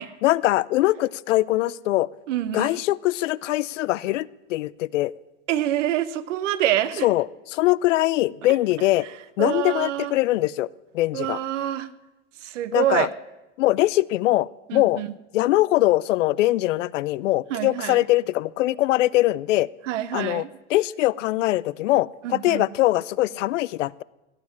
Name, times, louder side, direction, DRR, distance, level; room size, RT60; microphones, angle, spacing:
voice 1, 0.2-2.1 2.5-5.1 7.0-9.1 9.4-10.7 10.9-11.4 12.7-13.1 13.6-15.0 15.3-19.7 20.1-20.4 20.7-24.0, left 17 dB, 80° left, 21 dB, 0.6 m, -22 dB
voice 2, 2.3-2.8 5.5-7.1 9.4-10.1 11.1-11.9 12.4-13.1 14.7-15.1 17.5-18.0 19.8-20.5 22.2-22.7, right 12 dB, 75° right, 13 dB, 1.1 m, -26 dB
16.5 x 7.3 x 9.8 m, 1.0 s
hypercardioid pair, 110°, 37 cm